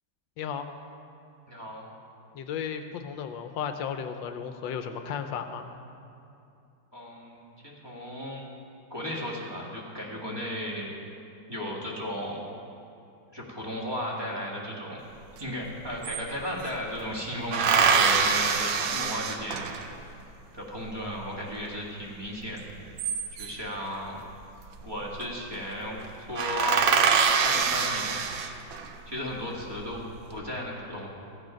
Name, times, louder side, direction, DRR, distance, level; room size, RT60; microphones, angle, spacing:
voice 1, 0.4-0.7 2.3-5.7, left 7 dB, 80° left, 8 dB, 1.4 m, -34 dB
voice 2, 1.5-1.9 6.9-8.4 8.9-10.9 11.5-12.4 13.3-15.0 15.4-19.7 20.5-22.6 23.4-24.2 24.8-27.0 27.4-28.2 29.1-31.1, left 1 dB, 15° right, -3 dB, 1.7 m, -35 dB
sound 1, 15.4-15.5 15.7-16.8 17.5-20.0 22.7-23.7 24.8-25.2 25.5-25.7 26.0-26.1 26.4-28.9 29.5-30.1, right 6 dB, 80° right, 1.5 m, -25 dB
15.0 x 8.5 x 5.1 m, 2.6 s
omnidirectional pair, 2.1 m